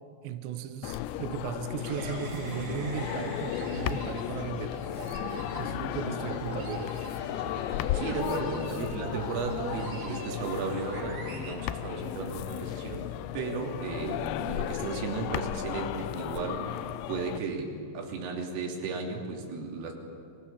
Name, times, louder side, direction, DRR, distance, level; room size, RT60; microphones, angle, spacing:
voice 1, 0.2-4.8 5.6-6.9, right 9 dB, 75° right, 8 dB, 3.1 m, -36 dB
sound 1, 0.8-17.4, left 13 dB, 80° left, 2.6 m, -35 dB
sound 2, 1.8-12.5, right 3 dB, 40° right, 3.8 m, -42 dB
voice 2, 7.6-19.9, right 4 dB, 90° right, 0 dB, 5.8 m, -35 dB
29.5 x 25.0 x 7.3 m, 2.6 s
omnidirectional pair, 5.7 m